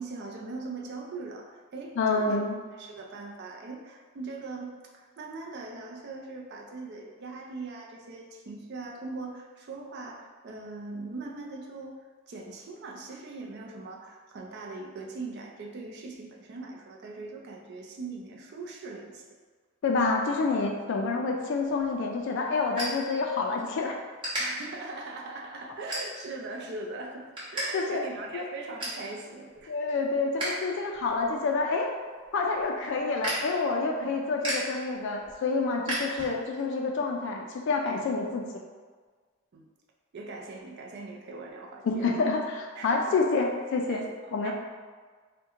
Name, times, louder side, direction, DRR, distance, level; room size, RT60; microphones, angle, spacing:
voice 1, 0.0-2.4 2.8-12.0 12.3-19.2 24.4-29.7 34.0-34.1 39.5-39.7 40.1-42.1 42.7-43.0 43.9-44.1 44.4-44.5, right 3 dB, 50° right, 0 dB, 0.4 m, -40 dB
voice 2, 2.0-2.6 19.8-24.0 27.7-28.0 28.3-28.5 29.7-31.9 32.3-38.4 41.8-44.0 44.3-44.5, left 3 dB, 55° left, 2 dB, 0.3 m, -28 dB
sound 1, 21.6-23.7 24.2-24.4 25.0-25.2 25.9-26.4 26.8-27.7 27.9-28.0 28.4-29.0 29.5-30.6 30.9-36.6, right 1 dB, 25° right, 1.0 m, -36 dB
2.9 x 2.1 x 3.5 m, 1.5 s
head